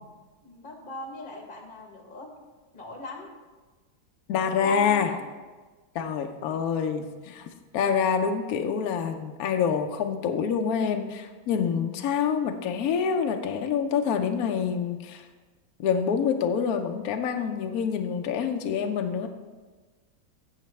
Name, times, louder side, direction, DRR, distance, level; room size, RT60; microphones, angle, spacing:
voice 1, 0.4-2.3 2.7-3.3 4.5-5.2, left 2 dB, 35° left, 2 dB, 0.8 m, -40 dB
voice 2, 4.3-5.1 5.9-15.3 15.8-19.3, left 7 dB, 70° left, 5 dB, 0.9 m, -26 dB
16.0 x 5.8 x 3.2 m, 1.3 s
omnidirectional pair, 2.1 m